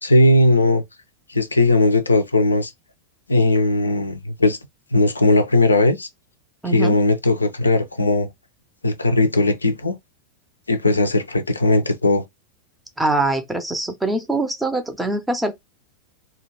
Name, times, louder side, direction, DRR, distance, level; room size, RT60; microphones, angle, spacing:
voice 1, 0.0-0.8 1.3-2.7 3.3-4.6 4.9-6.1 6.7-8.3 8.8-10.0 10.7-12.2, left 2 dB, 80° left, 0.4 m, -18 dB
voice 2, 6.6-6.9 13.0-15.5, right 2 dB, 5° right, 0.5 m, -23 dB
2.3 x 2.2 x 3.0 m
figure-of-eight pair, 90°, 0 cm